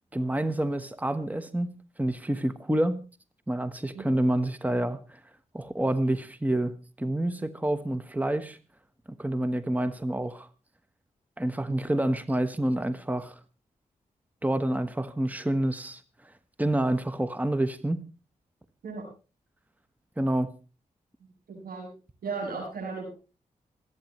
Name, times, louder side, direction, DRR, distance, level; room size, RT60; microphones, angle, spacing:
voice 1, 0.1-1.7 2.0-3.0 3.5-5.2 5.5-8.6 9.2-10.5 11.4-13.3 14.4-16.0 16.6-18.0 20.2-20.5, right 1 dB, 10° right, 1.2 m, -28 dB
voice 2, 21.5-21.9 22.2-23.1, right 4 dB, 85° right, 7.9 m, -35 dB
26.5 x 9.4 x 3.1 m
cardioid pair, 50°, 15 cm